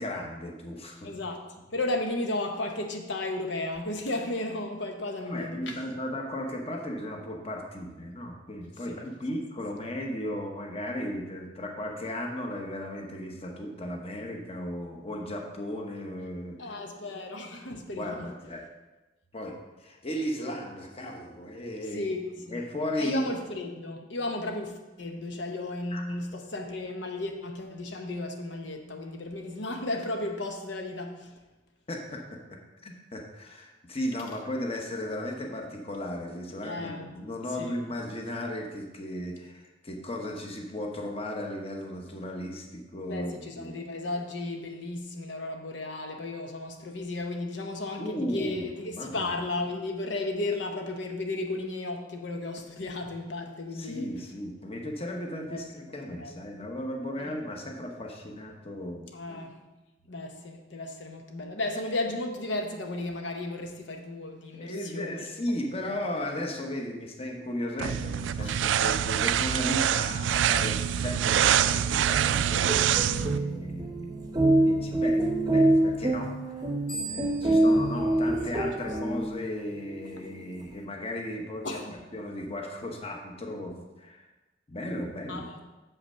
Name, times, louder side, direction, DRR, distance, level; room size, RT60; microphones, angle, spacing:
voice 1, 0.0-1.1 5.3-16.7 17.9-18.6 19.3-22.1 22.5-23.3 25.9-26.0 31.9-43.8 48.0-49.4 53.7-59.1 64.5-76.6 77.0-81.8 82.1-84.3 84.7-85.5, left 1 dB, 35° left, 2 dB, 1.0 m, -36 dB
voice 2, 1.0-1.4 1.7-5.8 8.9-9.1 9.3-9.4 16.6-18.3 21.9-22.6 23.0-31.3 36.6-37.1 37.6-37.8 43.1-54.1 55.4-55.9 56.2-56.4 57.2-57.3 59.1-59.6 60.1-65.3 65.8-66.0 68.4-68.6 77.4-77.6 81.6-81.9 85.3-85.6, left 2 dB, 80° left, 3 dB, 0.9 m, -34 dB
sound 1, 67.8-73.4, right 9 dB, 85° right, 0.3 m, -25 dB
sound 2, 72.0-79.6, right 1 dB, 20° right, 0.7 m, -26 dB
sound 3, 76.9-79.4, right 2 dB, 60° left, 2.9 m, -42 dB
7.3 x 5.8 x 5.5 m, 1.1 s
head